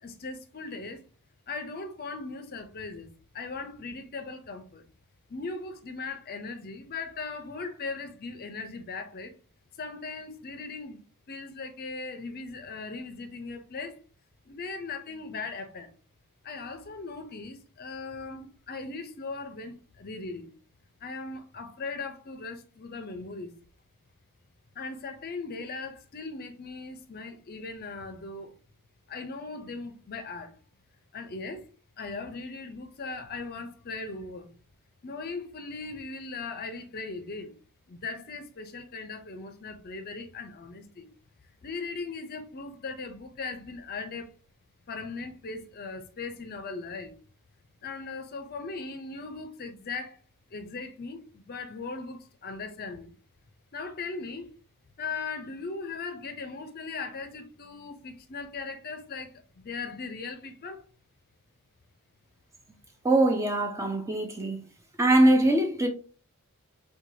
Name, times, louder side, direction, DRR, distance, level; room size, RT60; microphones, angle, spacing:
voice 1, 0.0-1.0 1.5-4.8 5.3-9.3 9.8-11.0 11.3-14.0 14.5-15.9 16.4-20.5 21.0-23.5 24.8-28.6 29.1-30.6 31.1-31.7 32.0-34.5 35.0-37.5 37.9-41.1 41.6-44.3 44.9-47.1 47.8-50.2 50.5-53.1 53.7-54.5 55.0-60.9, left 4 dB, 45° left, 0.5 m, -38 dB
voice 2, 63.0-64.7 65.0-65.9, right 1 dB, 15° right, 0.4 m, -22 dB
4.4 x 2.3 x 2.7 m
head